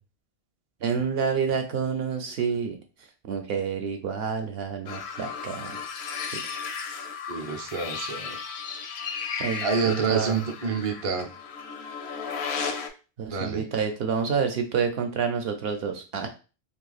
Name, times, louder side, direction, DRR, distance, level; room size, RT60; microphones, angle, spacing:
voice 1, 0.8-2.8 3.2-5.8 9.4-10.4 13.2-16.3, right 6 dB, 70° right, 5 dB, 0.8 m, -28 dB
sound 1, 4.9-12.9, left 6 dB, 80° left, 0.8 m, -35 dB
voice 2, 7.3-8.4 9.6-11.3 13.3-13.6, right 5 dB, 40° right, 3 dB, 0.6 m, -28 dB
2.8 x 2.5 x 3.9 m, 0.33 s
omnidirectional pair, 1.1 m